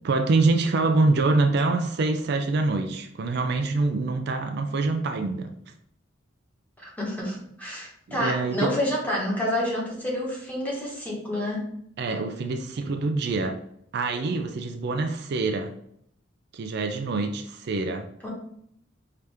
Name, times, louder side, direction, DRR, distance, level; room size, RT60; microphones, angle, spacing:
voice 1, 0.0-5.5 8.1-8.8 12.0-13.6 13.9-15.7 16.5-18.1, right 3 dB, 60° right, 0.4 m, -25 dB
voice 2, 6.8-11.6 18.2-18.3, left 1 dB, 10° left, 1.3 m, -29 dB
4.9 x 2.8 x 3.4 m
head